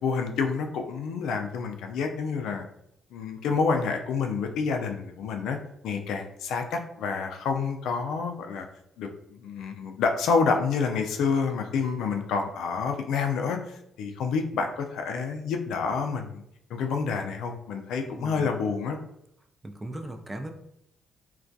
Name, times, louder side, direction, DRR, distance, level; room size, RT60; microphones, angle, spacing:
voice 1, 0.0-2.6 3.1-5.6 5.8-8.7 9.0-13.6 14.0-16.4 16.7-19.0, left 5 dB, 85° left, 5 dB, 0.3 m, -28 dB
voice 2, 18.0-18.5 19.6-20.5, right 1 dB, 20° right, 4 dB, 0.3 m, -38 dB
2.3 x 2.2 x 2.6 m, 0.77 s
cardioid pair, 90°, 0 cm